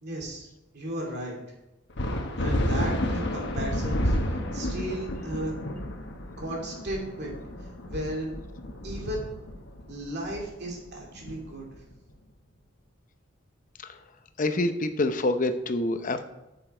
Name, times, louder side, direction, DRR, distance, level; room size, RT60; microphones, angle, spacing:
voice 1, 0.0-0.5 0.7-1.4 2.4-4.2 4.5-5.5 6.4-8.4 8.8-9.3 9.9-11.7, right 1 dB, 55° right, -1 dB, 2.6 m, -35 dB
sound 1, 2.0-11.9, left 1 dB, 60° left, 1.2 m, -31 dB
voice 2, 14.4-16.2, left 2 dB, 40° left, 9 dB, 0.7 m, -26 dB
9.0 x 6.9 x 4.4 m, 0.96 s
head